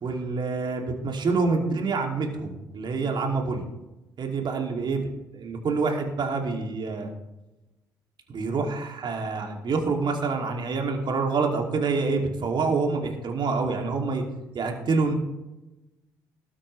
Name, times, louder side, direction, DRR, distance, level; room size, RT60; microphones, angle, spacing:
voice 1, 0.0-3.6 4.2-5.1 5.3-7.1 8.3-14.2 14.5-15.1, right 4 dB, 50° right, 2 dB, 2.7 m, -27 dB
19.0 x 8.8 x 3.3 m, 0.98 s
hypercardioid pair, 45°, 10 cm